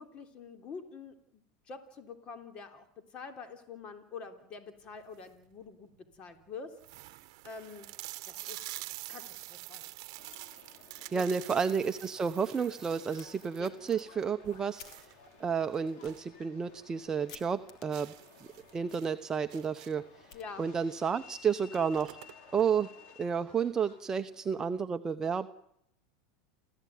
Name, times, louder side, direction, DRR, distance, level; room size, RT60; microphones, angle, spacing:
voice 1, 0.0-2.8 3.1-6.7 7.0-7.9 8.3-8.8 9.1-9.9 11.1-11.2 13.6-13.7 20.3-20.6, left 5 dB, 35° left, 7 dB, 3.5 m, -46 dB
sound 1, 4.9-5.4 6.1-6.2 6.4-6.5 6.8-16.3 16.7-16.8 17.2-17.3 17.9-20.1 21.1-21.2 21.5-22.6, right 20 dB, 65° right, 0.9 m, -47 dB
Subway metro underground, 10.2-24.8, left 5 dB, 55° left, 4.3 m, -57 dB
Fire, 10.3-11.1 11.4-11.5 11.9-12.0 13.2-13.3 13.9-21.0, left 7 dB, 75° left, 2.9 m, -58 dB
voice 2, 11.1-15.1 15.4-18.1 18.7-20.0 20.6-22.2 22.5-22.9 23.2-25.5, right 6 dB, 20° right, 8 dB, 0.8 m, -31 dB
29.5 x 14.5 x 9.3 m, 0.75 s
supercardioid pair, 120°, 3 cm